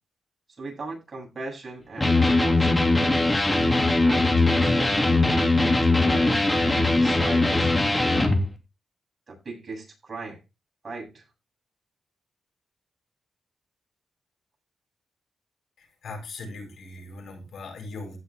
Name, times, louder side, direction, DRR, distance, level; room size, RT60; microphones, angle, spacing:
voice 1, 0.6-3.3 4.0-8.5 9.3-10.4 10.8-11.2, right 3 dB, 40° right, 8.0 m, -38 dB
Electric guitar, 2.0-8.4, left 2 dB, 15° left, 3.0 m, -21 dB
voice 2, 15.8-18.2, left 3 dB, 75° left, 7.6 m, -39 dB
16.5 x 6.5 x 3.7 m
cardioid pair, 100°, 0 cm